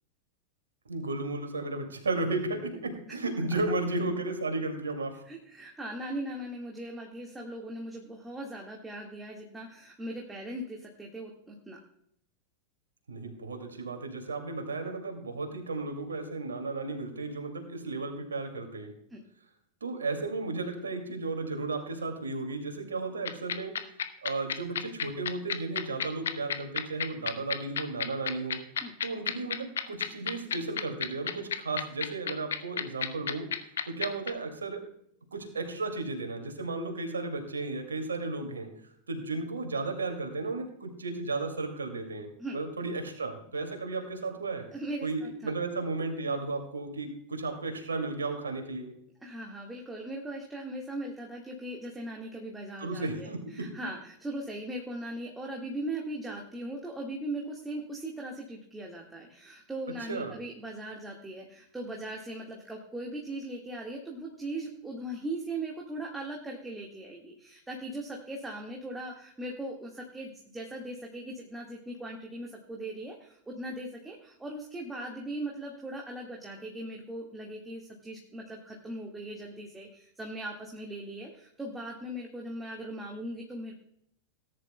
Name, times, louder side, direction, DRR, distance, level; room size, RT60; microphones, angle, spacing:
voice 1, 0.9-5.2 13.1-18.9 19.8-23.7 24.2-28.6 29.0-33.5 33.8-34.8 35.3-38.7 39.1-44.6 45.0-48.9 52.8-53.7 60.1-60.4, right 3 dB, 70° right, 4 dB, 2.3 m, -34 dB
voice 2, 5.2-11.8 19.1-19.2 28.8-28.9 42.4-42.6 44.7-45.5 49.2-83.7, right 1 dB, 10° right, -1 dB, 1.8 m, -39 dB
sound 1, 23.3-34.3, left 8 dB, 65° left, 0.8 m, -30 dB
18.5 x 10.5 x 2.2 m, 0.71 s
figure-of-eight pair, 90°, 0 cm